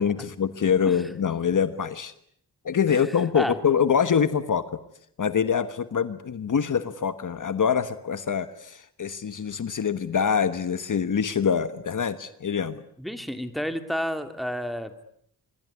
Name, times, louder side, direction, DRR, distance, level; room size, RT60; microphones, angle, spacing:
voice 1, 0.0-2.1 2.6-4.6 5.2-12.8, left 7 dB, 50° left, 12 dB, 1.3 m, -25 dB
voice 2, 2.9-3.6 13.0-15.0, equal, ahead, 8 dB, 2.5 m, -31 dB
26.0 x 22.0 x 9.6 m, 0.69 s
wide cardioid pair, 110°, 39 cm